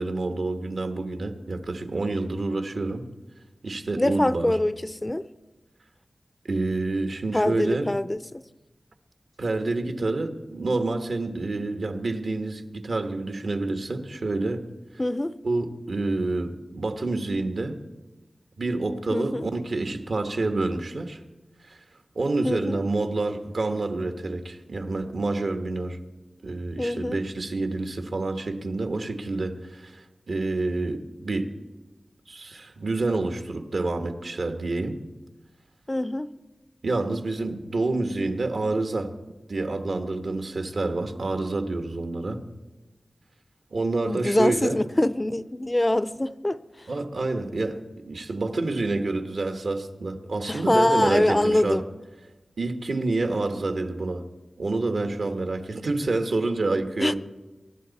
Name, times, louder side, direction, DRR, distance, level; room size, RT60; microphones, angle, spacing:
voice 1, 0.0-3.1 3.6-4.6 6.5-7.9 9.4-14.6 15.4-17.8 18.6-21.2 21.7-21.8 22.1-26.0 26.4-31.5 32.3-35.0 36.8-39.1 39.5-42.4 43.7-44.8 46.9-51.8 52.6-54.2 54.6-57.2, right 2 dB, 75° right, 1.3 m, -28 dB
voice 2, 4.0-5.2 7.3-8.4 15.0-15.3 19.1-19.5 22.4-22.8 26.8-27.2 35.9-36.3 44.1-46.6 50.5-51.8 57.0-57.1, left 1 dB, 25° left, 0.4 m, -24 dB
23.5 x 11.5 x 4.1 m
wide cardioid pair, 70°, 0 cm